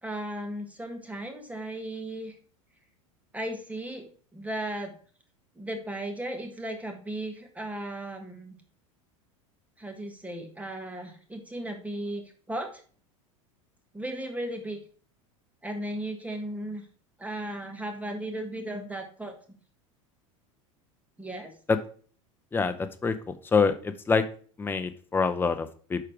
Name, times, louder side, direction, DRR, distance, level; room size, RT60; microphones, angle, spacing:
voice 1, 0.0-2.4 3.3-4.9 5.6-8.5 9.8-12.8 13.9-14.8 15.6-16.9 17.2-19.3 21.2-21.5, right 1 dB, 10° right, 4 dB, 1.5 m, -36 dB
voice 2, 22.5-23.1 23.5-24.2 24.6-26.0, left 5 dB, 10° left, 10 dB, 0.6 m, -25 dB
6.7 x 4.8 x 4.6 m, 0.43 s
hypercardioid pair, 90°, 17 cm